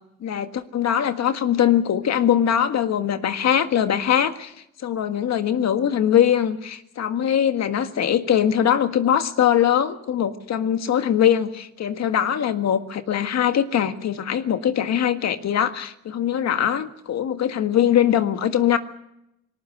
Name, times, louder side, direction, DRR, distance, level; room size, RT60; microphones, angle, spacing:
voice 1, 0.2-4.5 4.8-18.8, left 9 dB, 60° left, 9 dB, 1.7 m, -21 dB
20.5 x 18.0 x 8.0 m, 0.81 s
cardioid pair, 90°, 30 cm